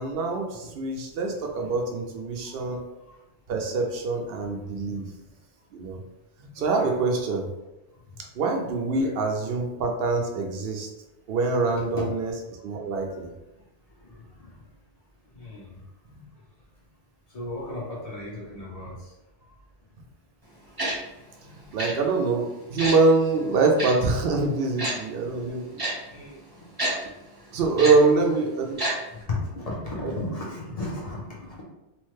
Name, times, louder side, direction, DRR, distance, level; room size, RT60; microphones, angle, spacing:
voice 1, 0.0-2.8 3.5-5.1 5.7-6.0 6.4-7.5 8.3-10.9 11.3-12.3 12.6-13.3 16.2-16.3 21.4-25.8 27.5-28.8 30.0-30.2, right 3 dB, 65° right, 2 dB, 0.7 m, -24 dB
voice 2, 2.4-3.2 4.9-5.0 6.6-7.0 8.1-8.2 9.0-9.2 12.0-12.1 13.5-13.6 14.0-14.6 15.2-15.8 17.3-19.1 26.1-26.4 27.7-28.2 29.1-31.6, left 2 dB, 40° left, -4 dB, 0.6 m, -36 dB
Tick-tock, 20.8-20.9 21.8-21.9 22.8-23.0 23.8-23.9 24.8-24.9 25.8-25.9 26.8-26.9 27.8-27.9 28.8-28.9 29.2-29.3, right 1 dB, 25° right, 0.7 m, -27 dB
3.0 x 2.1 x 3.1 m, 0.96 s
omnidirectional pair, 1.1 m